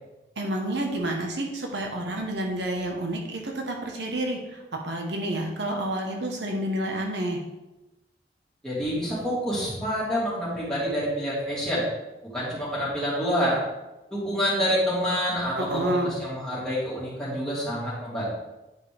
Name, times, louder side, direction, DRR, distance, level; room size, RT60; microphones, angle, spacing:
voice 1, 0.4-7.4 15.6-16.1, right 1 dB, 80° right, 1 dB, 1.1 m, -29 dB
voice 2, 8.6-11.8 12.3-13.6 14.1-18.4, equal, 5° left, -9 dB, 2.8 m, -27 dB
9.5 x 5.0 x 3.4 m, 1.0 s
head